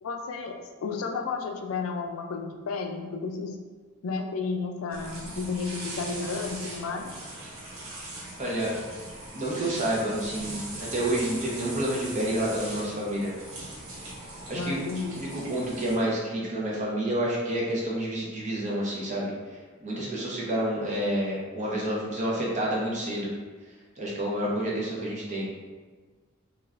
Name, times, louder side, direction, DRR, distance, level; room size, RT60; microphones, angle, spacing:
voice 1, 0.0-3.6 4.0-7.1 14.5-15.3, left 4 dB, 80° left, 4 dB, 0.3 m, -32 dB
sound 1, 4.9-16.0, right 2 dB, 85° right, 0.7 m, -40 dB
voice 2, 8.4-8.7 9.3-13.3 14.5-14.8 15.1-19.3 19.8-23.3 24.0-25.5, right 1 dB, 35° right, -4 dB, 0.7 m, -29 dB
3.2 x 2.4 x 2.4 m, 1.4 s
head